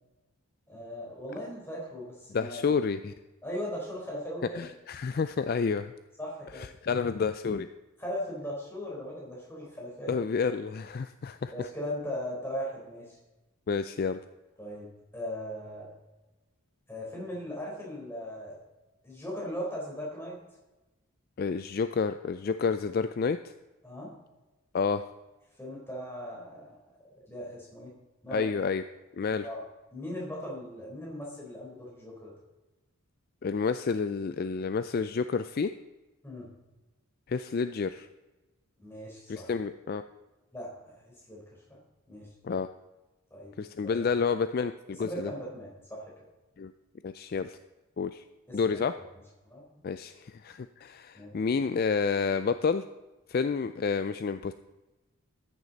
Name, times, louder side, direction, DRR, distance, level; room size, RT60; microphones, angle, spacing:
voice 1, 0.7-2.8 3.4-4.7 6.2-6.7 8.0-10.2 11.5-13.2 14.6-15.9 16.9-18.6 19.0-20.4 23.8-24.1 25.6-26.8 27.3-27.9 28.2-28.5 29.4-29.6 29.9-32.3 36.2-36.5 38.8-39.5 40.5-41.4 41.7-41.8 42.1-42.3 43.3-43.5 43.8-44.0 45.0-46.0 48.5-48.8 49.5-49.8 51.1-51.4, equal, 10° left, -4 dB, 3.9 m, -38 dB
voice 2, 2.3-3.1 4.5-5.9 6.8-7.7 10.1-11.7 13.7-14.2 21.4-23.4 24.7-25.0 28.3-28.8 29.2-29.5 33.4-35.7 37.3-38.1 39.3-40.0 42.4-42.7 43.6-45.3 46.6-46.7 47.0-47.6 48.0-48.2 48.5-49.0 49.8-52.8 53.3-54.5, left 5 dB, 45° left, 11 dB, 0.3 m, -29 dB
14.0 x 9.8 x 4.0 m, 1.1 s
head